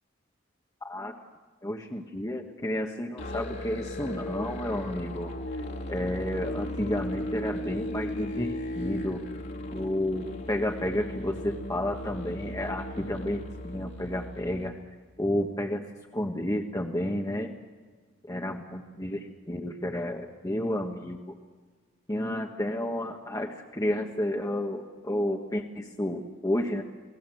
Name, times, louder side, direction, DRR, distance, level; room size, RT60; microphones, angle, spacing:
voice 1, 0.8-1.2 1.6-5.6 5.9-9.2 9.7-14.8 15.2-15.9 16.1-17.5 18.2-21.3 22.1-26.8, left 1 dB, 15° left, 2 dB, 1.4 m, -31 dB
Musical instrument, 3.2-14.8, left 1 dB, 55° left, 2.9 m, -36 dB
28.5 x 19.5 x 7.8 m, 1.5 s
head